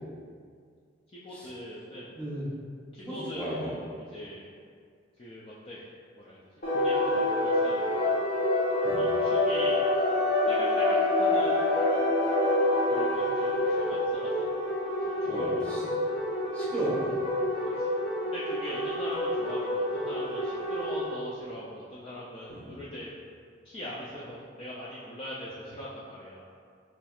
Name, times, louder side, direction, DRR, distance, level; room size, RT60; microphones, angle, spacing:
voice 1, 1.1-2.1 2.9-4.5 5.2-5.9 6.2-6.4 6.7-8.1 9.0-9.8 10.5-11.6 12.9-14.3 15.0-15.7 17.8-17.9 18.2-23.1 23.6-26.5, equal, 30° left, -7 dB, 0.4 m, -41 dB
voice 2, 2.1-2.5 3.0-3.7 8.8-9.0 15.2-16.0 16.5-17.1 22.5-22.7, right 1 dB, 5° left, -11 dB, 1.2 m, -34 dB
sound 1, 6.6-21.0, left 1 dB, 55° left, 0.9 m, -27 dB
4.3 x 3.0 x 2.4 m, 2.2 s
head